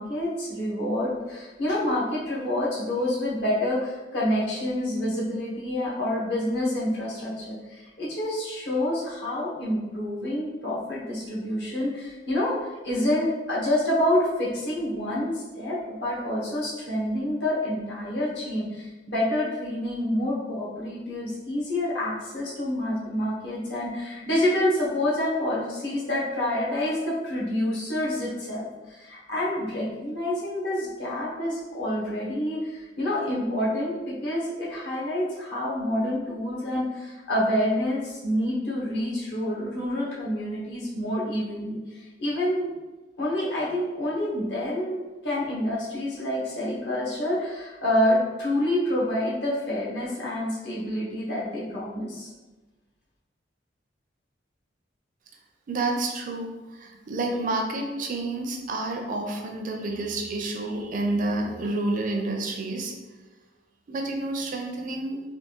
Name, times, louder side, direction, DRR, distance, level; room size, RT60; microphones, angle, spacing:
voice 1, 0.0-12.6 12.8-42.7 43.2-52.3, left 1 dB, 65° left, -6 dB, 1.0 m, -27 dB
voice 2, 55.7-62.9 63.9-65.2, right 2 dB, 45° right, 2 dB, 0.4 m, -29 dB
3.5 x 2.3 x 2.9 m, 1.2 s
head